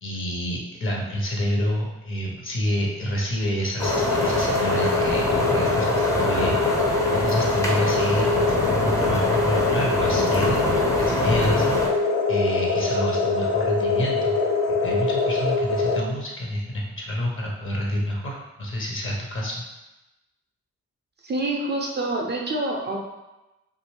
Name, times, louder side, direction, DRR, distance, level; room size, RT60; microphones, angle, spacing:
voice 1, 0.0-6.7 7.1-12.0 12.3-14.4 14.7-19.6, equal, 40° left, -2 dB, 1.0 m, -28 dB
sound 1, 3.8-16.0, left 3 dB, 55° left, 0.6 m, -23 dB
sound 2, 3.8-11.9, equal, 10° left, 0.7 m, -26 dB
voice 2, 21.2-23.0, right 2 dB, 30° right, -1 dB, 0.6 m, -26 dB
2.6 x 2.5 x 3.1 m, 1.0 s
hypercardioid pair, 40°, 32 cm